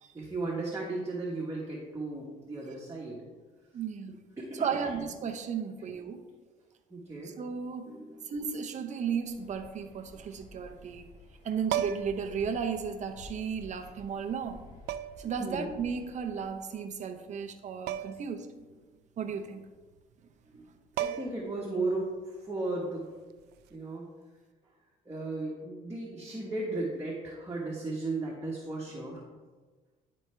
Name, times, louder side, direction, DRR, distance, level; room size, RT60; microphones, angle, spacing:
voice 1, 0.1-3.2 4.4-4.9 6.9-7.3 7.8-8.3 15.4-15.7 18.7-18.8 20.5-20.7 21.0-23.1 23.7-24.1 25.0-29.2, right 2 dB, 15° right, -4 dB, 1.3 m, -35 dB
voice 2, 3.7-4.3 4.5-6.2 7.4-7.9 8.3-11.1 11.4-14.6 15.2-18.5 19.2-19.7, right 6 dB, 45° right, 6 dB, 0.8 m, -34 dB
Waves surf, 9.2-16.5, equal, 60° left, 2.1 m, -52 dB
sound 1, 11.7-12.3 13.6-13.7 14.9-15.3 17.9-18.3 18.6-18.7 20.5-20.6 21.0-21.5 23.5-23.7, right 11 dB, 75° right, 0.4 m, -34 dB
10.5 x 4.3 x 3.4 m, 1.3 s
cardioid pair, 110°, 17 cm